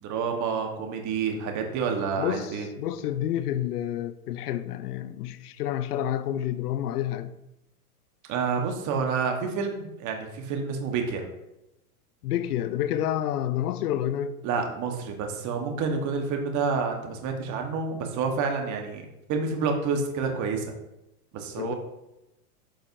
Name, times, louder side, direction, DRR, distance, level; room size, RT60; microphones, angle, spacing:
voice 1, 0.0-2.7 8.3-11.3 14.4-20.7 21.3-21.7, right 5 dB, 40° right, 1.3 m, -29 dB
voice 2, 2.2-7.3 12.2-14.4 21.6-21.7, left 11 dB, 80° left, 0.6 m, -29 dB
8.8 x 5.3 x 2.6 m
hypercardioid pair, 110°, 45 cm